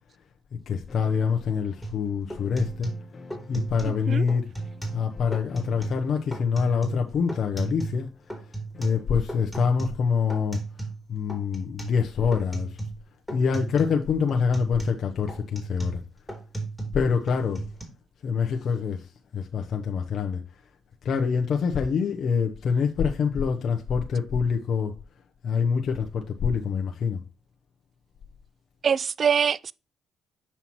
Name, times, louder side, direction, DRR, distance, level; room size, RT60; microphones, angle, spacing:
voice 1, 0.7-2.9 3.5-4.5 4.9-8.1 8.8-10.6 11.1-12.8 13.3-16.0 16.9-17.7 18.2-20.4 21.0-24.9 25.4-27.2, left 6 dB, 60° left, 0.8 m, -25 dB
sound 1, 0.9-9.3, left 3 dB, 40° left, 1.1 m, -50 dB
sound 2, 1.8-2.0 2.3-4.0 4.3-5.0 5.3-6.0 6.3-8.0 8.3-11.0 11.3-12.0 12.3-13.0 13.3-14.0 14.3-17.0 17.3-17.8, right 2 dB, ahead, 3.0 m, -35 dB
voice 2, 3.8-4.3 28.8-29.7, right 7 dB, 50° right, 0.3 m, -24 dB
7.1 x 5.7 x 3.1 m
cardioid pair, 90°, 0 cm